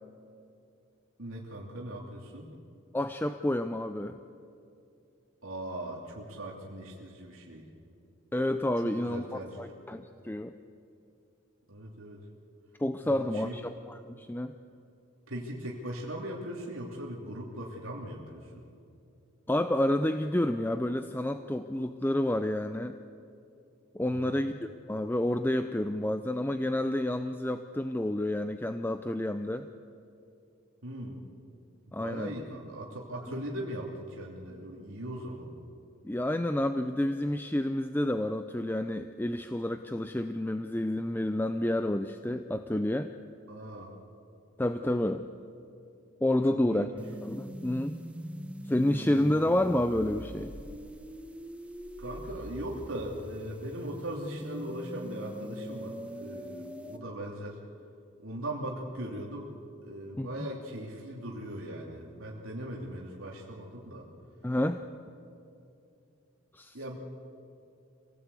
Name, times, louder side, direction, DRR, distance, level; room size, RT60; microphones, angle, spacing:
voice 1, 1.2-2.5 5.4-7.6 8.8-9.7 11.7-12.2 13.0-13.5 15.3-18.6 24.1-24.5 30.8-31.3 32.0-35.5 43.5-43.9 46.5-47.0 52.0-57.6 58.2-59.5 59.8-64.0 66.7-67.0, right 1 dB, 75° right, -2 dB, 2.8 m, -39 dB
voice 2, 2.9-4.2 8.3-10.5 12.8-14.5 19.5-22.9 23.9-29.7 31.9-32.3 36.0-43.1 44.6-45.3 46.2-46.9 47.2-48.0 48.7-50.5 60.2-60.3 64.4-64.8 66.5-66.8, left 1 dB, 10° left, 9 dB, 0.5 m, -29 dB
sound 1, 47.0-57.0, equal, 5° right, 1.0 m, -42 dB
26.5 x 17.5 x 8.3 m, 2.6 s
head